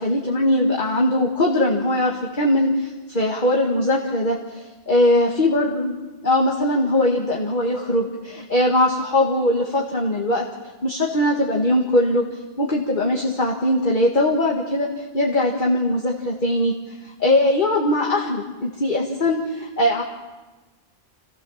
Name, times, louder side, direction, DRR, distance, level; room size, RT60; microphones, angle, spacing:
voice 1, 0.0-5.9 6.2-10.5 10.8-12.3 12.6-20.0, left 1 dB, 45° left, -1 dB, 1.9 m, -21 dB
27.5 x 16.0 x 7.2 m, 1.2 s
omnidirectional pair, 1.1 m